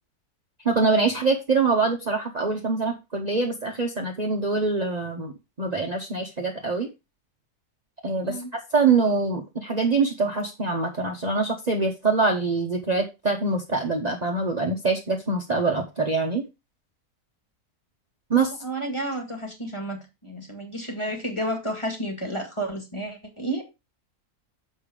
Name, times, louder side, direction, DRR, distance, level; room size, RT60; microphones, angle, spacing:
voice 1, 0.6-5.3 5.6-6.9 8.0-8.4 8.7-16.4 18.3-18.6, right 4 dB, 30° right, 1 dB, 1.1 m, -24 dB
voice 2, 18.6-23.6, right 1 dB, 20° left, 2 dB, 2.1 m, -31 dB
7.1 x 5.4 x 4.9 m, 0.25 s
omnidirectional pair, 1.6 m